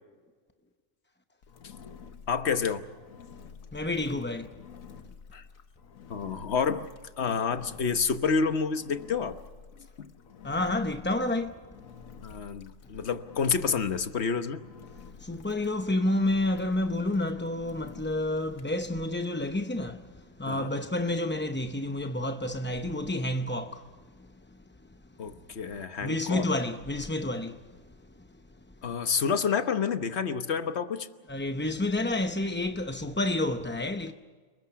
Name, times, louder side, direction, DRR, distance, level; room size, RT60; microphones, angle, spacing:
Engine, 1.4-18.7, left 6 dB, 70° left, 1.5 m, -50 dB
voice 1, 2.3-2.8 5.3-5.4 6.1-6.9 7.2-9.4 9.8-10.1 12.2-14.6 20.5-20.7 25.2-26.5 28.8-31.1, left 6 dB, 50° left, 1.2 m, -29 dB
voice 2, 3.7-4.5 10.4-11.6 15.0-23.8 24.2-24.3 26.0-27.6 31.3-34.1, left 1 dB, 15° left, 0.4 m, -29 dB
30.0 x 21.0 x 5.8 m
omnidirectional pair, 1.5 m